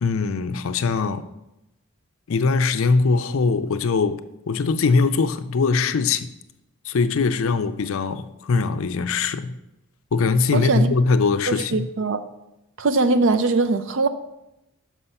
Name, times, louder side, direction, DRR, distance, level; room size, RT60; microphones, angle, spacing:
voice 1, 0.0-1.3 2.3-4.2 4.5-6.3 6.8-9.5 10.1-11.8, left 4 dB, 65° left, 0.4 m, -21 dB
voice 2, 10.5-11.0 11.5-12.3 12.8-14.1, right 3 dB, 55° right, 0.5 m, -21 dB
6.1 x 5.5 x 5.7 m
head